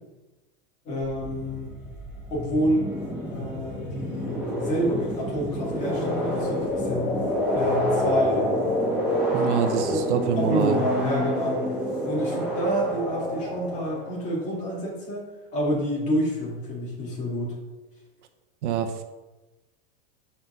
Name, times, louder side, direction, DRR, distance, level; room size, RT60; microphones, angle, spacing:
voice 1, 0.8-1.8 2.3-2.9 3.3-7.1 7.5-8.6 9.3-9.6 9.9-10.0 10.4-11.7 12.0-17.6, equal, 20° left, -4 dB, 2.0 m, -28 dB
sound 1, 1.0-14.4, equal, 5° right, 1.7 m, -28 dB
voice 2, 9.3-10.8 18.6-18.9, right 7 dB, 70° right, 7 dB, 1.0 m, -25 dB
5.9 x 5.6 x 6.0 m, 1.1 s
supercardioid pair, 180°, 36 cm